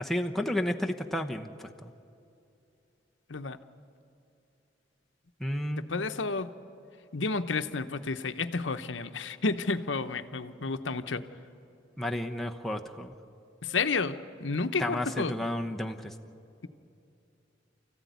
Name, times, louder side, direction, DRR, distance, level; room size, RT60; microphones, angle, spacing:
voice 1, 0.0-1.9 5.4-5.9 12.0-13.1 14.8-16.1, left 1 dB, ahead, 1 dB, 1.0 m, -32 dB
voice 2, 5.9-6.5 7.1-11.2 13.6-15.3, left 4 dB, 70° left, 10 dB, 0.9 m, -31 dB
29.0 x 14.5 x 9.4 m, 2.7 s
head